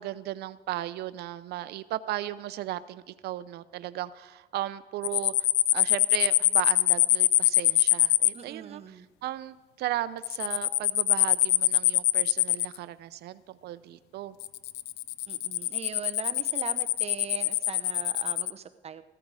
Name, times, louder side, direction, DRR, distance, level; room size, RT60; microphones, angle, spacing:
voice 1, 0.0-5.3 5.7-14.4, right 14 dB, 75° right, 15 dB, 0.7 m, -36 dB
sound 1, 5.0-8.3 10.2-12.8 14.4-18.5, left 16 dB, 80° left, 0.4 m, -23 dB
voice 2, 8.3-9.1 15.3-19.0, right 7 dB, 40° right, 10 dB, 0.9 m, -40 dB
15.0 x 13.5 x 4.8 m, 1.2 s
cardioid pair, 110°, 17 cm